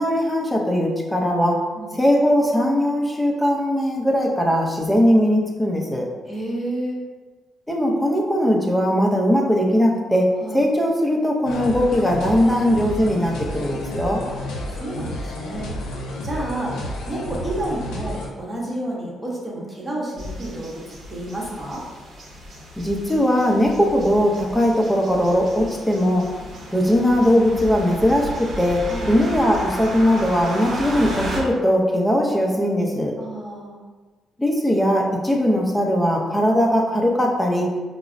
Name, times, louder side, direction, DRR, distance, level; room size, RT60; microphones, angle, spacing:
voice 1, 0.0-1.6 1.9-6.1 7.7-10.3 10.5-14.2 22.8-26.3 26.7-33.1 34.4-37.7, equal, 5° left, -1 dB, 0.6 m, -19 dB
voice 2, 6.3-7.0 10.4-10.6 14.2-14.4 14.7-15.7 16.1-16.7 17.1-21.8 28.9-29.1 33.2-33.8, right 1 dB, 20° right, -4 dB, 0.9 m, -30 dB
sound 1, 11.4-18.3, left 1 dB, 90° left, 0.6 m, -31 dB
sound 2, 20.2-31.4, equal, 55° right, 0.8 m, -34 dB
4.5 x 2.0 x 2.5 m, 1.3 s
cardioid pair, 90°, 0 cm